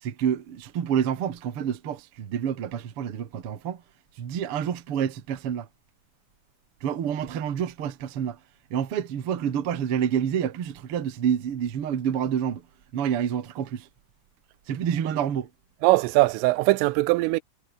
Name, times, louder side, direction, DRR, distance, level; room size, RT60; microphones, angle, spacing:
voice 1, 0.0-3.8 4.2-5.7 6.8-8.4 8.7-12.6 12.9-13.9 14.7-15.5, right 8 dB, 70° right, 1.3 m, -28 dB
voice 2, 15.8-17.4, right 21 dB, 85° right, 3.2 m, -21 dB
omnidirectional pair, 5.8 m